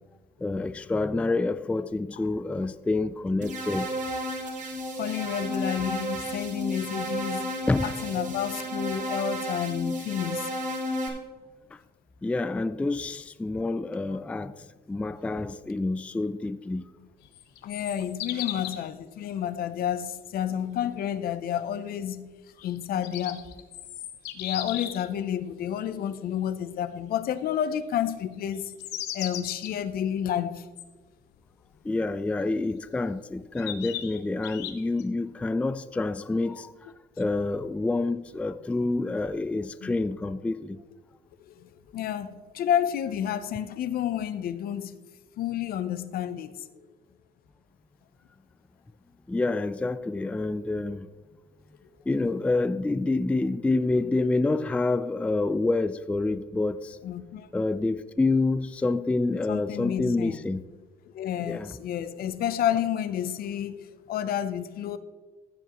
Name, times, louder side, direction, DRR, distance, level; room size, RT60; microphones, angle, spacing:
voice 1, 0.4-4.0 7.7-7.9 11.7-11.8 12.2-16.8 31.8-40.8 49.3-51.1 52.1-57.0 57.5-60.6 61.4-61.7, left 2 dB, 5° left, 0.3 m, -28 dB
sound 1, 3.4-11.1, equal, 45° right, 2.2 m, -32 dB
voice 2, 5.0-10.5 17.6-22.3 22.6-23.4 24.3-28.7 29.1-30.7 39.8-40.0 41.4-45.0 45.4-46.7 51.8-51.9 57.0-57.5 59.5-60.4 61.1-65.0, left 10 dB, 60° left, 0.7 m, -30 dB
sound 2, 17.2-18.9 22.8-25.1 28.5-29.7 30.8-30.9 32.7-32.8 33.6-35.0, left 12 dB, 90° left, 0.9 m, -36 dB
15.0 x 7.1 x 3.0 m
cardioid pair, 110°, 17 cm